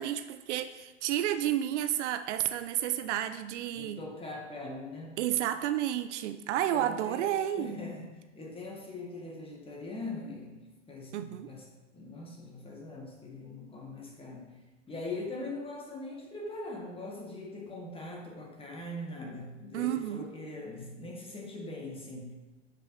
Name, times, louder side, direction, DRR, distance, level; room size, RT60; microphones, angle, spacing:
voice 1, 0.0-4.0 5.2-7.8 11.1-11.5 19.7-20.3, right 12 dB, 65° right, 10 dB, 0.5 m, -31 dB
voice 2, 3.7-5.3 6.7-11.6 11.9-14.5 14.9-22.3, left 2 dB, 15° left, 0 dB, 1.3 m, -41 dB
7.6 x 5.1 x 3.1 m, 1.1 s
hypercardioid pair, 110°, 37 cm